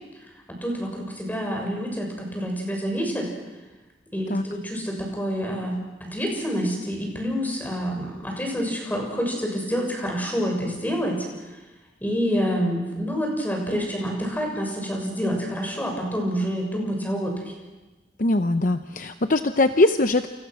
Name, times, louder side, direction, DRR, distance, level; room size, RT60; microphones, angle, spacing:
voice 1, 0.5-3.3 4.1-11.3 12.0-17.5, equal, 10° left, 1 dB, 6.7 m, -27 dB
voice 2, 18.2-20.3, left 2 dB, 45° left, 8 dB, 0.8 m, -21 dB
29.0 x 29.0 x 6.3 m, 1.2 s
head